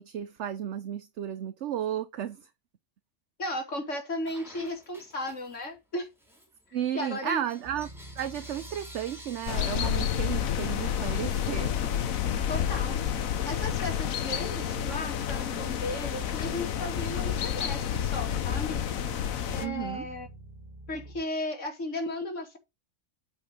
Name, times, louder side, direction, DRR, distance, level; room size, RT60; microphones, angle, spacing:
voice 1, 0.0-2.4 6.7-7.9 8.2-11.7 19.6-20.0, right 10 dB, 60° right, 1.0 m, -33 dB
voice 2, 3.4-6.1 6.9-7.4 12.5-13.0 13.4-18.8 19.5-20.3 20.9-22.6, left 1 dB, 60° left, 2.9 m, -35 dB
Bell / Coin (dropping), 4.2-5.8 6.2-12.1, equal, ahead, 3.5 m, -51 dB
sound 1, 7.6-21.2, right 1 dB, 35° right, 1.8 m, -48 dB
sound 2, 9.5-19.7, left 9 dB, 85° left, 1.3 m, -30 dB
8.7 x 4.6 x 5.0 m
omnidirectional pair, 1.4 m